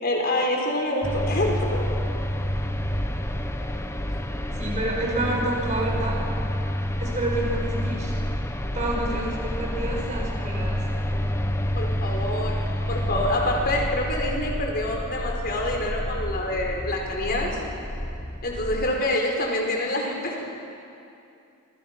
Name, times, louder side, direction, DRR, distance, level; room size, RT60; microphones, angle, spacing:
voice 1, 0.0-2.1 11.7-12.6 12.9-17.6 18.4-20.4, left 1 dB, 45° left, 0 dB, 4.8 m, -26 dB
sound 1, 1.0-19.0, equal, 10° left, 1.0 m, -29 dB
voice 2, 4.5-6.2 7.0-8.1 8.7-10.8, right 2 dB, 35° right, -3 dB, 6.6 m, -29 dB
27.5 x 26.5 x 6.1 m, 2.6 s
head